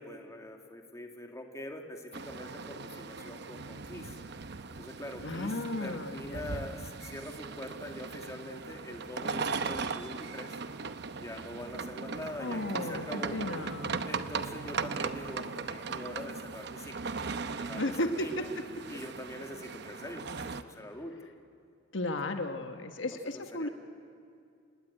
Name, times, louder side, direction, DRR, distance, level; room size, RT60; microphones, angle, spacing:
voice 1, 0.0-4.2 4.8-10.6 11.1-13.4 14.0-17.1 17.5-18.5 18.9-21.1 22.3-22.4 23.0-23.7, left 1 dB, 15° left, 3 dB, 2.0 m, -44 dB
sound 1, 2.1-20.6, right 4 dB, 60° right, 0.9 m, -38 dB
voice 2, 5.2-6.6 12.4-14.0 17.8-18.4 21.9-23.7, left 2 dB, 70° left, 6 dB, 1.3 m, -34 dB
28.0 x 17.0 x 10.0 m, 2.4 s
head